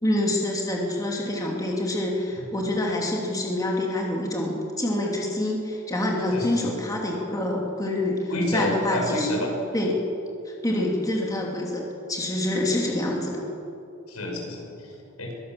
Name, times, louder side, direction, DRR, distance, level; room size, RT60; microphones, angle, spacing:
voice 1, 0.0-9.4 9.7-10.0 10.6-13.4, left 1 dB, 15° left, -2 dB, 2.9 m, -26 dB
voice 2, 6.3-6.7 8.3-9.5 14.1-15.3, left 1 dB, 85° left, 0 dB, 6.3 m, -29 dB
22.5 x 17.0 x 7.6 m, 2.7 s
head